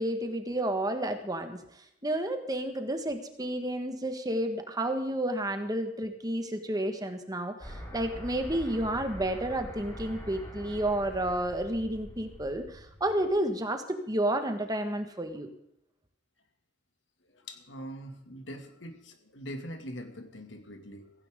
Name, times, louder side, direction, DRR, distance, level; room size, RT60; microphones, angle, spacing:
voice 1, 0.0-1.6 2.0-15.5, right 1 dB, 20° right, 6 dB, 1.6 m, -31 dB
sound 1, 7.6-13.4, equal, 20° left, 5.6 m, -44 dB
voice 2, 17.2-21.1, equal, 75° left, 6 dB, 2.3 m, -43 dB
16.5 x 16.0 x 3.8 m, 0.76 s
head